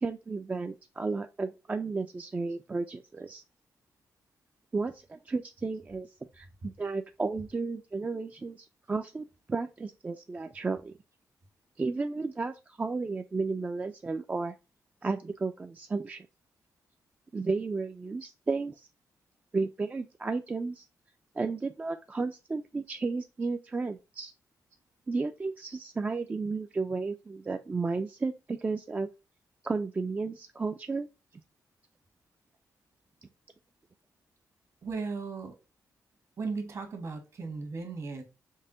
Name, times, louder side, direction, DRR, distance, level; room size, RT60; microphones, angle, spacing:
voice 1, 0.0-3.4 4.7-6.1 6.3-10.9 11.8-14.5 15.0-16.3 17.3-18.9 19.5-20.9 21.4-24.3 25.1-29.1 29.6-31.1, right 4 dB, 25° right, 0.3 m, -33 dB
voice 2, 34.8-35.5 36.4-38.2, right 4 dB, 55° right, 1.2 m, -36 dB
5.4 x 2.1 x 3.7 m
cardioid pair, 105°, 6 cm